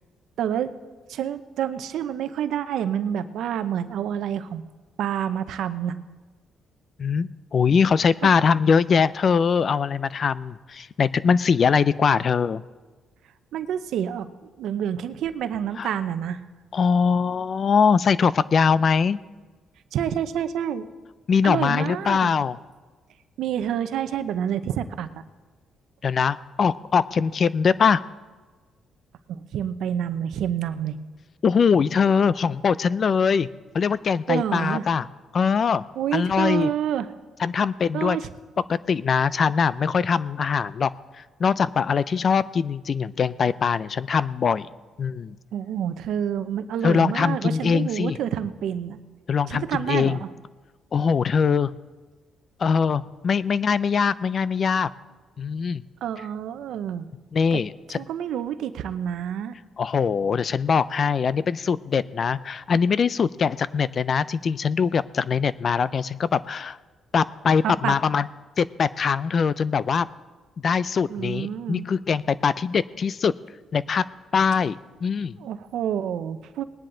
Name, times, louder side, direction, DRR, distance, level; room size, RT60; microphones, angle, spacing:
voice 1, 0.4-0.7 1.1-4.6 5.0-6.0 8.2-8.3 13.5-14.3 14.6-16.4 19.9-20.9 21.4-22.3 23.4-25.1 29.3-30.9 34.3-34.9 36.0-37.1 37.9-38.3 45.5-49.0 49.5-50.3 56.0-57.1 57.5-57.6 57.9-59.5 67.6-67.9 71.1-71.9 75.4-76.6, right 9 dB, 80° right, 11 dB, 0.7 m, -28 dB
voice 2, 7.0-12.6 15.8-15.9 16.7-19.2 21.3-22.6 26.0-28.0 31.4-33.5 33.7-35.1 35.3-35.8 36.1-36.7 37.4-38.2 38.7-44.7 45.0-45.4 46.8-48.2 49.3-50.2 50.9-51.7 52.6-54.9 55.4-55.8 57.3-58.0 59.8-66.8 67.1-68.3 68.6-70.1 70.6-73.3 73.7-74.0 74.3-75.3, left 6 dB, 50° left, 17 dB, 0.4 m, -22 dB
20.0 x 10.0 x 3.9 m, 1.3 s
cardioid pair, 90°, 0 cm